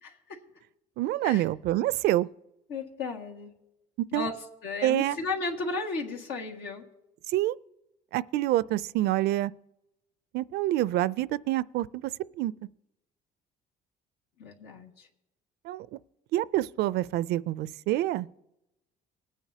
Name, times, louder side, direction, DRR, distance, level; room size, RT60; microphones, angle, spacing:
voice 1, 0.0-0.4 1.2-1.4 2.7-3.6 4.1-6.8 14.4-15.1, left 3 dB, 85° left, 1.8 m, -34 dB
voice 2, 1.0-2.3 4.0-4.3 4.8-5.2 7.3-7.6 8.1-9.5 10.3-12.1 12.4-12.5 15.6-15.9 16.3-18.3, right 15 dB, 75° right, 0.4 m, -27 dB
19.5 x 9.0 x 2.8 m
cardioid pair, 110°, 17 cm